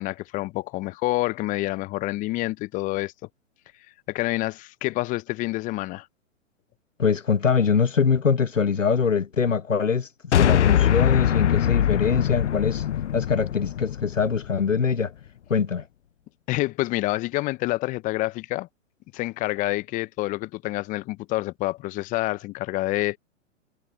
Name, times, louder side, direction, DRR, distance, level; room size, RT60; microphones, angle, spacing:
voice 1, 0.0-3.1 4.1-6.1 16.5-18.7 19.1-23.2, left 19 dB, 20° left, 0.7 m, -27 dB
voice 2, 7.0-12.8 13.1-15.1 15.5-15.9, left 6 dB, 90° left, 1.5 m, -23 dB
sound 1, 10.3-14.8, left 10 dB, 65° left, 0.9 m, -22 dB
figure-of-eight pair, 120°, 37 cm